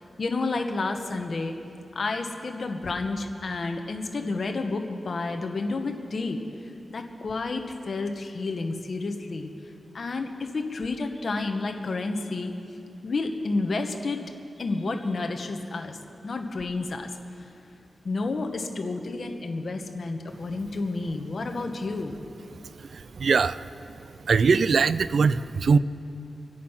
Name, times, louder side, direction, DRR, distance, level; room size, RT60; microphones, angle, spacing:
voice 1, 0.2-1.6 1.9-6.4 6.9-9.5 9.9-12.5 13.0-14.2 14.6-16.0 16.2-17.1 18.0-22.2, left 3 dB, 50° left, 4 dB, 1.2 m, -30 dB
voice 2, 22.8-23.7 24.2-25.8, right 5 dB, 65° right, 16 dB, 0.4 m, -22 dB
25.0 x 8.4 x 5.8 m, 2.8 s
wide cardioid pair, 105°, 0 cm